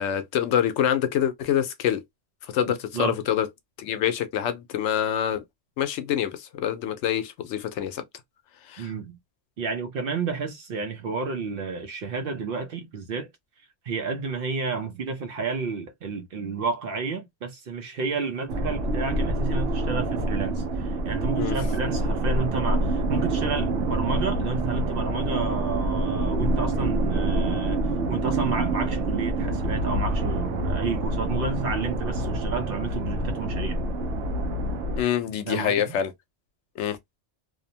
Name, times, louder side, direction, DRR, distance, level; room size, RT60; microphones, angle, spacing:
voice 1, 0.0-2.0 2.4-3.5 3.8-5.4 5.8-8.0 8.7-8.9 21.4-21.6 35.0-36.1 36.8-37.0, left 9 dB, 80° left, 0.9 m, -26 dB
voice 2, 8.8-9.2 9.6-13.3 13.8-33.8 35.5-36.0, right 4 dB, 60° right, 0.7 m, -31 dB
sound 1, 18.5-35.0, right 2 dB, 85° right, 0.9 m, -26 dB
2.6 x 2.1 x 2.6 m
omnidirectional pair, 1.2 m